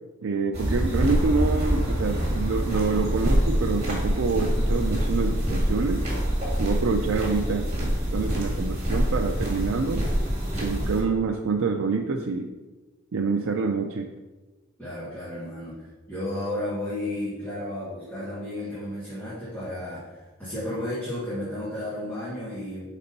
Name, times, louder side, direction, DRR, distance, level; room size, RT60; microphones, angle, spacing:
voice 1, 0.2-6.0 6.6-10.0 10.6-12.5 13.1-14.1, right 4 dB, 65° right, 3 dB, 0.4 m, -26 dB
sound 1, 0.5-11.0, equal, 30° right, 2.2 m, -25 dB
voice 2, 14.8-22.8, left 1 dB, 10° left, -11 dB, 1.6 m, -33 dB
5.1 x 4.2 x 5.2 m, 1.2 s
head